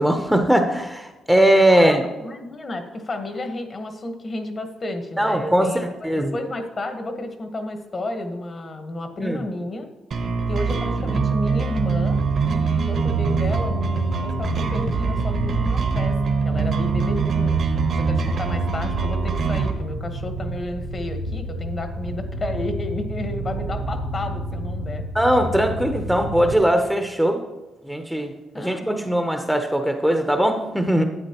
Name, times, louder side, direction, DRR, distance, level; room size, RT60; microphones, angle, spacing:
voice 1, 0.0-2.0 5.2-6.4 9.2-9.4 25.1-27.4 27.8-31.0, right 1 dB, ahead, 5 dB, 0.7 m, -20 dB
voice 2, 1.7-9.9 10.5-17.6 17.9-25.0 28.5-28.9, left 2 dB, 35° left, 7 dB, 1.2 m, -32 dB
sound 1, 10.1-19.7, right 5 dB, 55° right, 1.0 m, -23 dB
sound 2, 11.9-26.5, right 1 dB, 80° right, 0.8 m, -30 dB
11.0 x 8.3 x 2.9 m, 1.1 s
cardioid pair, 90°, 0 cm